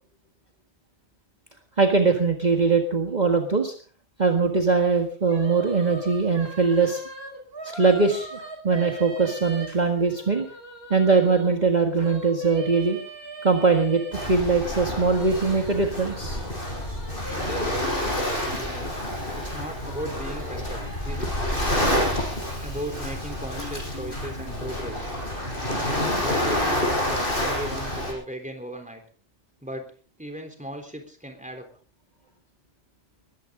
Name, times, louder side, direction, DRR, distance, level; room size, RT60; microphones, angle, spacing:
voice 1, 1.8-3.7 4.2-7.0 7.7-10.5 10.9-13.0 13.4-16.4, right 4 dB, 40° right, 3 dB, 1.8 m, -21 dB
sound 1, 5.3-11.5 12.0-14.3 14.7-19.0 19.4-23.6, right 2 dB, 55° right, 5.4 m, -41 dB
Waves surf, 14.1-28.1, left 1 dB, 50° left, 5.9 m, -28 dB
voice 2, 17.3-17.8 18.4-18.9 19.3-21.3 22.1-25.1 25.7-29.0 29.6-29.9 30.2-31.7, equal, 5° right, 4 dB, 3.6 m, -37 dB
20.5 x 15.5 x 3.8 m, 0.41 s
omnidirectional pair, 1.2 m